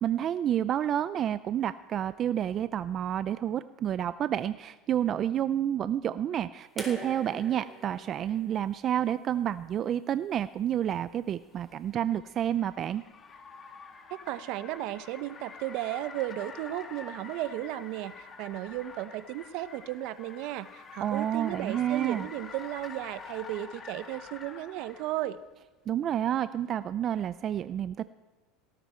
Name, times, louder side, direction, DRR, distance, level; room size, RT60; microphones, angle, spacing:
voice 1, 0.0-13.0 21.0-22.3 25.9-28.0, right 10 dB, 40° right, 13 dB, 0.5 m, -29 dB
sound 1, 6.8-9.9 11.1-11.2, equal, ahead, 4.2 m, -45 dB
Car, 11.3-25.3, left 5 dB, 25° left, 2.3 m, -47 dB
voice 2, 14.1-25.4, right 14 dB, 65° right, 14 dB, 0.9 m, -35 dB
18.0 x 17.5 x 4.5 m, 1.2 s
supercardioid pair, 120°, 0 cm